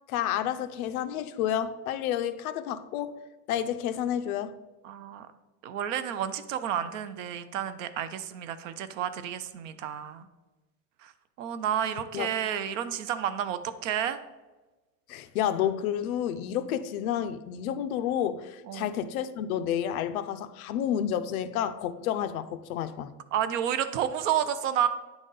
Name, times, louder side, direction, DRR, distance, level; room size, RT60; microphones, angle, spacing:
voice 1, 0.1-3.2 3.5-4.5 12.1-12.3 15.1-23.1, left 10 dB, 65° left, 0.5 m, -30 dB
voice 2, 4.8-5.3 5.6-10.3 11.0-11.1 11.4-14.2 18.6-18.9 23.3-24.9, right 9 dB, 55° right, 0.5 m, -30 dB
9.2 x 4.0 x 3.8 m
supercardioid pair, 180°, 48 cm